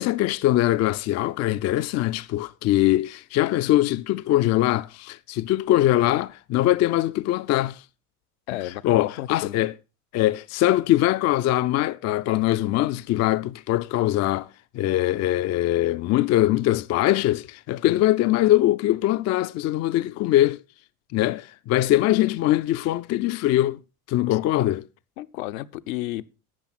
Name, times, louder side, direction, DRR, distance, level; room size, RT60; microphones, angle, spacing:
voice 1, 0.0-7.8 8.8-9.7 10.1-14.5 14.7-20.6 21.1-23.8 24.1-24.9, left 14 dB, 35° left, 0.5 m, -22 dB
voice 2, 8.5-9.6 17.8-18.0 24.3-24.4 25.2-26.3, left 16 dB, 65° left, 0.9 m, -33 dB
12.5 x 8.4 x 4.1 m
hypercardioid pair, 75°, 45 cm